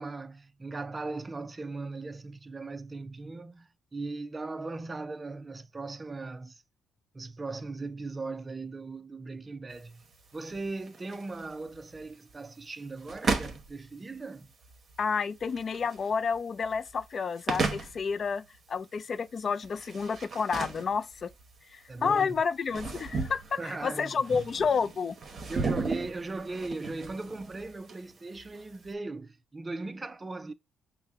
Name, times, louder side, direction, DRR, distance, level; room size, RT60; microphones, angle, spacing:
voice 1, 0.0-6.6 7.1-10.0 10.3-14.5 21.9-22.4 23.6-24.4 25.5-30.5, right 3 dB, 25° right, 0.5 m, -38 dB
sound 1, 9.7-28.9, right 4 dB, 45° right, 1.0 m, -37 dB
voice 2, 15.0-21.3 21.7-25.2, left 5 dB, 45° left, 0.3 m, -30 dB
5.7 x 2.1 x 3.5 m
cardioid pair, 90°, 0 cm